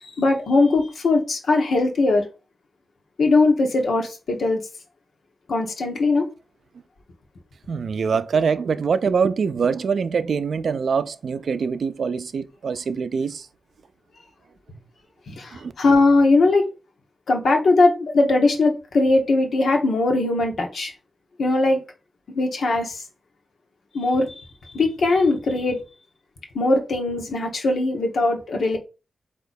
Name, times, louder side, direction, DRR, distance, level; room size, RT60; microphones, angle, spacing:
voice 1, 0.0-2.2 3.2-4.6 5.5-6.2 15.3-16.7 17.3-20.9 21.4-21.8 22.3-23.0 23.9-24.4 24.7-25.8 26.5-28.8, left 2 dB, 85° left, 1.1 m, -20 dB
voice 2, 7.7-13.5 15.5-15.7, right 5 dB, 70° right, 0.4 m, -24 dB
4.5 x 2.9 x 4.0 m
wide cardioid pair, 165°, 0 cm